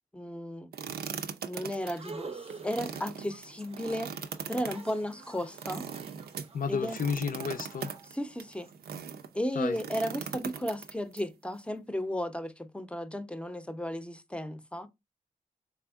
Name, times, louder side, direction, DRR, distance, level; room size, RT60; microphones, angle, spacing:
voice 1, 0.1-0.7 1.4-4.1 4.5-5.9 6.7-7.0 8.1-8.7 9.3-14.9, equal, 5° left, 0.6 m, -34 dB
sound 1, 0.7-9.3 9.7-11.2, right 7 dB, 85° right, 0.4 m, -40 dB
sound 2, 1.8-8.7, right 4 dB, 40° right, 0.6 m, -48 dB
voice 2, 6.5-7.9 9.5-9.8, left 6 dB, 60° left, 0.5 m, -32 dB
3.5 x 3.4 x 2.3 m
cardioid pair, 50°, 16 cm